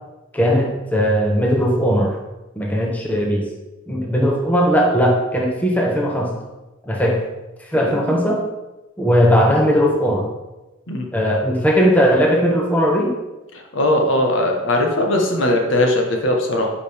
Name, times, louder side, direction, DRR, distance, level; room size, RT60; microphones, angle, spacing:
voice 1, 0.3-2.2 2.6-3.5 3.9-6.3 6.9-7.3 7.6-8.5 9.0-10.3 11.1-13.2, equal, 5° left, -1 dB, 0.8 m, -18 dB
voice 2, 7.9-8.4 10.9-11.1 13.5-16.7, left 1 dB, 65° left, 2 dB, 1.2 m, -19 dB
10.0 x 5.2 x 3.4 m, 1.1 s
head